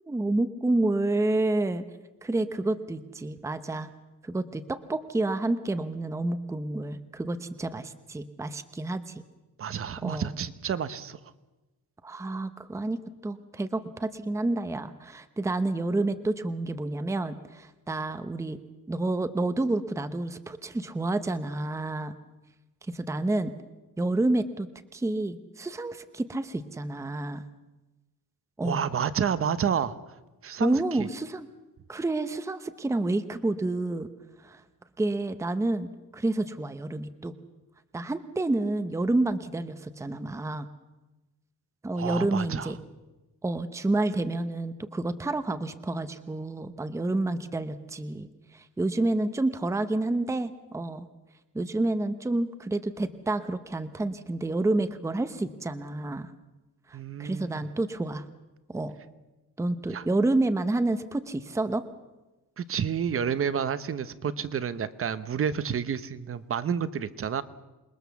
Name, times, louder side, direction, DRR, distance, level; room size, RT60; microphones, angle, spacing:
voice 1, 0.1-1.8 2.2-3.9 4.2-9.2 10.0-10.3 12.0-18.6 18.9-22.1 22.9-23.5 24.0-24.7 24.9-27.4 28.6-28.8 30.6-31.5 31.9-34.1 34.4-34.6 35.0-37.3 37.9-40.7 41.8-42.8 43.4-51.1 51.5-56.3 56.9-58.2 58.7-59.0 59.6-61.8, right 2 dB, 10° right, 10 dB, 0.8 m, -29 dB
voice 2, 9.6-11.2 28.6-30.0 30.4-31.1 41.9-42.7 56.9-57.6 59.9-60.0 62.6-67.4, right 7 dB, 35° right, 14 dB, 0.9 m, -30 dB
27.5 x 21.0 x 7.0 m, 1.1 s
cardioid pair, 175°, 39 cm